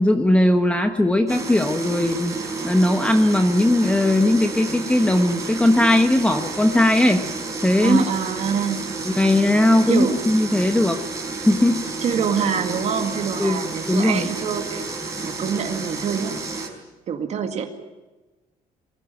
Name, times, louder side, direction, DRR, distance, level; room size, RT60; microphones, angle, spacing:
voice 1, 0.0-2.4 2.6-7.2 7.6-8.0 9.0-11.0 11.5-11.8 13.4-13.6 13.9-14.3, left 1 dB, 10° left, 5 dB, 1.2 m, -18 dB
sound 1, 1.3-16.7, right 3 dB, 25° right, 4.5 m, -31 dB
voice 2, 7.8-8.9 9.9-10.2 12.0-14.9 15.2-16.4 17.1-17.6, right 7 dB, 50° right, 5 dB, 2.1 m, -25 dB
23.0 x 16.0 x 9.1 m, 1.1 s
cardioid pair, 135°, 14 cm